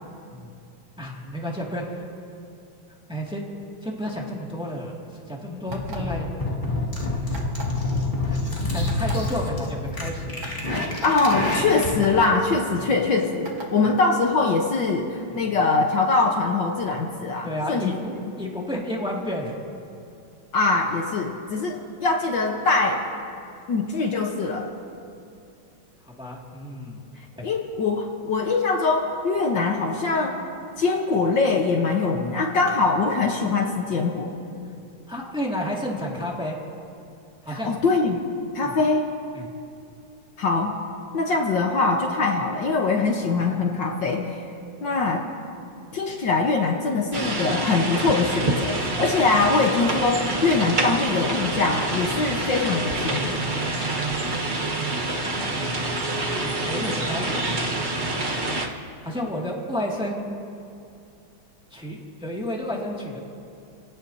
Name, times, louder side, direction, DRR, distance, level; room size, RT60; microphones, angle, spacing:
voice 1, 1.0-2.1 3.1-3.5 3.8-6.3 7.0-7.4 8.3-8.4 8.7-10.4 12.8-12.9 17.4-19.6 26.1-27.0 27.4-27.5 35.1-36.6 37.4-37.8 38.6-38.7 39.3-39.5 55.2-55.9 56.2-57.7 59.0-60.3 61.7-63.2, equal, ahead, -3 dB, 2.0 m, -31 dB
sound 1, 5.7-12.1, left 2 dB, 25° left, 2.5 m, -27 dB
sound 2, 5.7-6.2 7.3-7.8 8.9-9.1 9.9-10.0 10.4-10.6 11.0-11.1 12.0-12.3 13.5-13.7, right 1 dB, 70° right, 3.1 m, -37 dB
voice 2, 11.0-18.2 20.5-23.0 23.7-24.7 27.4-30.4 30.8-34.3 37.5-38.2 38.5-39.1 40.4-40.7 41.1-44.3 44.8-45.2 45.9-53.4, left 3 dB, 65° left, 1 dB, 1.8 m, -23 dB
sound 3, 47.1-58.7, right 2 dB, 30° right, 1.2 m, -27 dB
29.5 x 17.5 x 2.8 m, 2.5 s
omnidirectional pair, 2.2 m